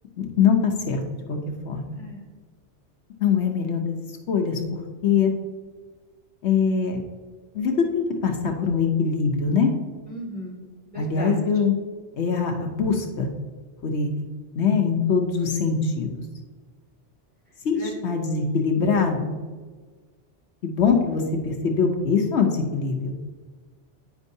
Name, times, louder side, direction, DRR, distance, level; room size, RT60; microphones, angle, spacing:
voice 1, 0.2-1.0 1.3-1.4 1.6-1.9 3.2-5.3 6.4-7.0 7.5-9.7 11.0-11.7 12.2-13.3 13.8-14.2 14.6-16.2 17.6-19.4 20.6-23.1, left 5 dB, 75° left, 3 dB, 1.0 m, -23 dB
voice 2, 10.1-10.6 10.9-11.4 17.7-18.3, equal, 10° right, -6 dB, 2.0 m, -36 dB
9.4 x 5.3 x 2.7 m, 1.4 s
omnidirectional pair, 1.2 m